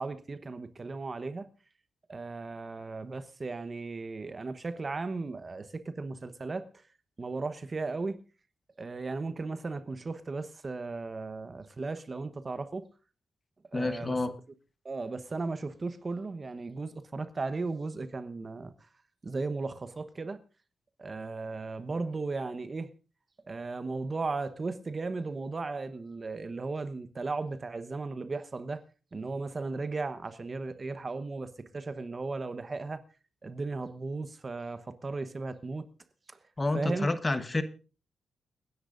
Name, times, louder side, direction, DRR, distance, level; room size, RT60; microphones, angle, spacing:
voice 1, 0.0-1.4 2.1-6.6 7.2-8.2 8.8-12.8 13.7-14.2 14.8-18.7 19.2-20.4 21.0-22.9 23.5-28.8 29.1-33.0 33.4-35.8 36.3-36.4 36.7-37.1, right 3 dB, 35° right, 1.0 m, -36 dB
voice 2, 13.7-14.3 36.6-37.6, left 2 dB, 25° left, 1.1 m, -29 dB
29.5 x 10.0 x 2.6 m
cardioid pair, 90°, 0 cm